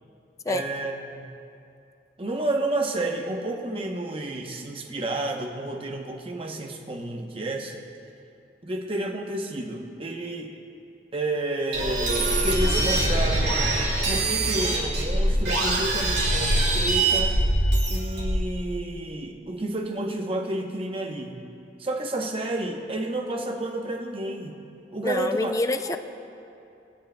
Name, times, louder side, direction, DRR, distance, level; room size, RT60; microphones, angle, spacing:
voice 1, 0.5-1.3 2.2-7.8 8.6-10.5 11.1-13.7 14.0-17.4 17.9-21.4 21.8-24.6 24.9-25.5 25.9-26.0, right 2 dB, 30° right, 2 dB, 0.8 m, -30 dB
sound 1, 11.7-18.5, right 1 dB, 65° right, 2.3 m, -23 dB
voice 2, 25.0-26.0, left 2 dB, 20° left, 9 dB, 0.3 m, -26 dB
19.0 x 10.0 x 2.2 m, 2.6 s
head